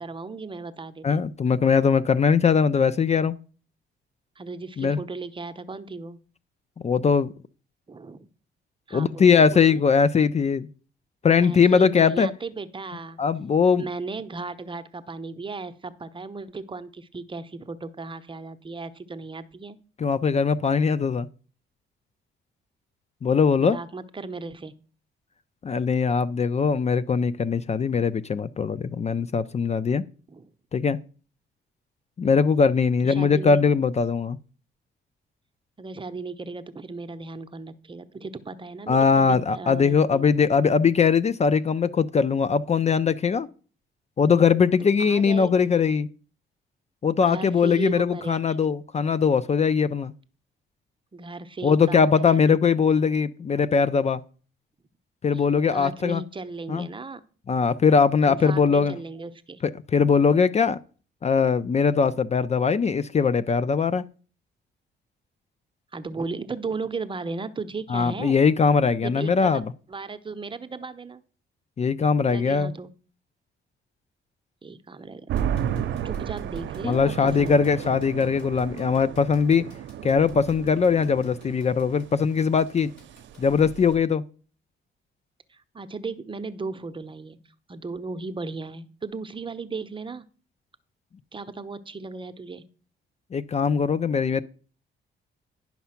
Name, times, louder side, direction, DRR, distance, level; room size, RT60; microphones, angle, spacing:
voice 1, 0.0-1.3 4.4-6.2 7.9-8.3 8.9-9.8 11.4-13.2 13.8-19.8 23.6-24.7 30.3-30.5 33.0-33.8 35.8-40.3 45.0-45.5 47.2-48.6 51.1-52.6 55.3-55.5 55.7-57.2 58.3-59.6 61.9-62.2 65.9-68.3 69.0-69.6 69.9-71.2 72.3-72.9 74.6-75.3 76.0-77.9 85.5-90.3 91.3-92.6, right 3 dB, 25° right, 0.8 m, -36 dB
voice 2, 1.0-3.4 4.8-5.0 6.8-7.3 8.9-10.7 11.2-12.3 13.2-13.9 20.0-21.3 23.2-23.8 25.6-30.0 30.7-31.0 32.2-34.4 38.9-43.5 44.2-46.1 47.0-50.1 51.6-54.2 55.2-56.2 56.7-56.9 57.5-59.0 59.6-60.8 61.2-64.0 67.9-69.7 71.8-72.7 76.8-79.7 80.0-82.9 83.4-84.2 93.3-94.4, left 5 dB, 35° left, 0.5 m, -21 dB
sound 1, 75.3-84.0, right 9 dB, 70° right, 0.7 m, -33 dB
sound 2, 75.4-83.4, left 2 dB, 70° left, 4.9 m, -54 dB
10.5 x 5.7 x 5.8 m
cardioid pair, 90°, 20 cm